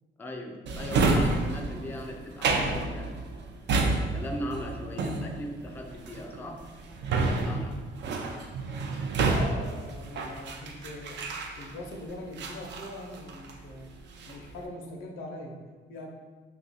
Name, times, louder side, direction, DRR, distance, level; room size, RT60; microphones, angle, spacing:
voice 1, 0.2-3.2 4.1-6.7 7.1-7.8, left 1 dB, 10° left, 3 dB, 0.3 m, -39 dB
Drawer open or close, 0.7-11.9 12.4-13.6 14.0-14.5, right 3 dB, 65° right, 0.4 m, -29 dB
voice 2, 9.3-11.2 11.6-13.9 14.3-15.6 15.9-16.1, left 2 dB, 85° left, 1 dB, 0.6 m, -41 dB
3.0 x 2.4 x 3.9 m, 1.3 s
cardioid pair, 90°, 20 cm